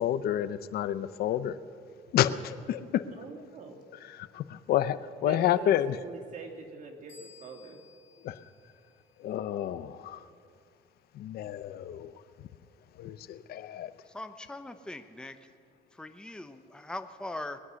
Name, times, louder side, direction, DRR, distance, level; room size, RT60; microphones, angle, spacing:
voice 1, 0.0-1.6 2.1-3.1 4.0-6.0 8.2-8.4 9.2-10.3 11.1-12.5 12.9-13.9, left 11 dB, 65° left, 13 dB, 0.7 m, -30 dB
voice 2, 3.2-3.8 5.2-7.8, right 4 dB, 50° right, 3 dB, 2.3 m, -44 dB
sound 1, 7.1-9.6, left 5 dB, 45° left, 2.7 m, -58 dB
voice 3, 14.1-15.4 16.0-17.6, left 2 dB, 5° left, 8 dB, 0.7 m, -40 dB
21.0 x 9.6 x 6.3 m, 2.2 s
cardioid pair, 110°, 17 cm